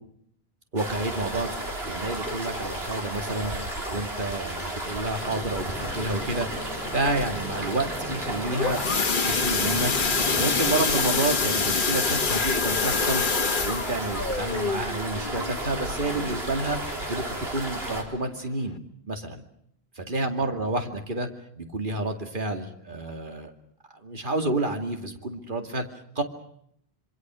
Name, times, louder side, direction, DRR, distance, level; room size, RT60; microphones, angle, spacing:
voice 1, 0.7-1.5 1.8-3.5 3.9-6.5 6.8-8.8 9.2-9.9 10.4-13.2 13.6-16.8 17.1-17.2 17.5-18.8 19.1-19.4 20.1-21.3 21.6-23.5 23.9-25.9 26.2-26.3, right 2 dB, 55° right, 5 dB, 2.6 m, -29 dB
sound 1, 0.8-18.0, right 1 dB, 75° right, 4.2 m, -33 dB
sound 2, 5.2-10.8, left 2 dB, 35° left, 3.1 m, -39 dB
sound 3, 8.2-16.9 17.3-17.6 17.9-18.0 18.5-18.6, left 5 dB, 55° left, 1.3 m, -27 dB
27.0 x 25.0 x 6.3 m, 0.71 s
omnidirectional pair, 1.0 m